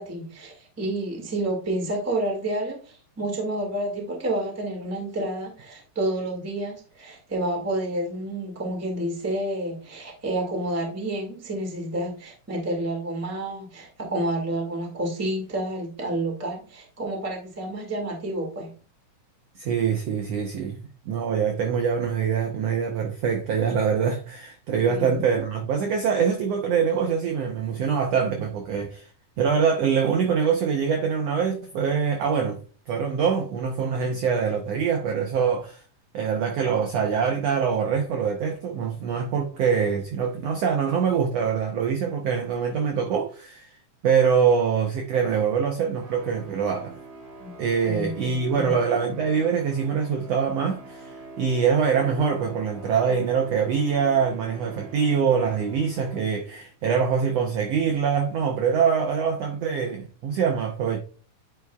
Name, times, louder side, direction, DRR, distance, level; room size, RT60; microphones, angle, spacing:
voice 1, 0.0-18.7 24.9-25.2 47.4-47.5 47.8-48.7, right 1 dB, 10° right, 0.8 m, -29 dB
voice 2, 19.6-29.1 29.4-32.6 32.9-35.8 36.1-43.7 44.0-46.9 47.6-61.0, right 6 dB, 85° right, 1.4 m, -24 dB
sound 1, 46.0-56.7, right 3 dB, 55° right, 4.8 m, -44 dB
10.0 x 4.7 x 2.3 m
omnidirectional pair, 3.9 m